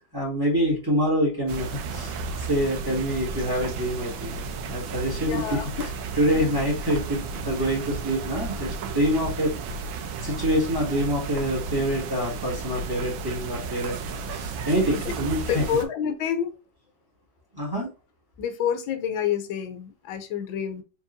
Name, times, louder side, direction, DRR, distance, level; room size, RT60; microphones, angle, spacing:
voice 1, 0.1-5.6 6.1-9.5 10.2-14.0 14.2-15.6 17.5-17.9, equal, 10° right, 1.7 m, -26 dB
sound 1, 1.5-15.8, right 4 dB, 90° right, 1.5 m, -33 dB
voice 2, 5.2-5.9 15.0-15.1 15.5-16.5 18.4-20.8, left 8 dB, 80° left, 1.4 m, -28 dB
4.5 x 3.9 x 2.6 m
omnidirectional pair, 2.1 m